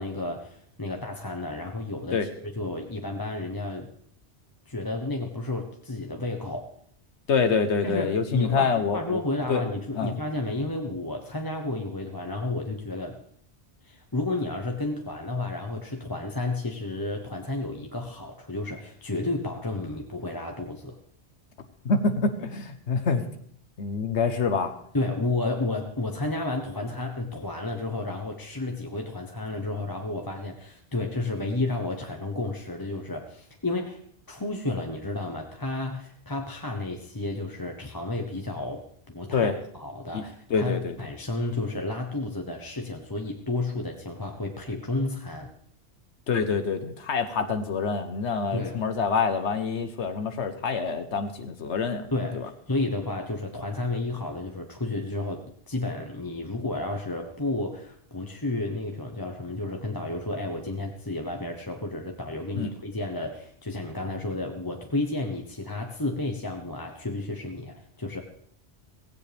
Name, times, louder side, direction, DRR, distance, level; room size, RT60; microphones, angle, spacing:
voice 1, 0.0-3.9 4.7-6.7 7.8-13.2 13.8-21.0 24.9-34.0 34.3-45.5 48.5-48.8 52.1-68.2, left 2 dB, 20° left, 2 dB, 1.0 m, -32 dB
voice 2, 7.3-9.2 9.5-9.6 9.9-10.2 21.8-23.2 23.8-24.7 39.3-39.6 40.1-40.2 40.5-41.0 46.3-52.1 52.3-52.5 62.5-62.7, left 5 dB, 80° left, 8 dB, 1.3 m, -26 dB
16.5 x 16.0 x 3.5 m, 0.63 s
omnidirectional pair, 1.1 m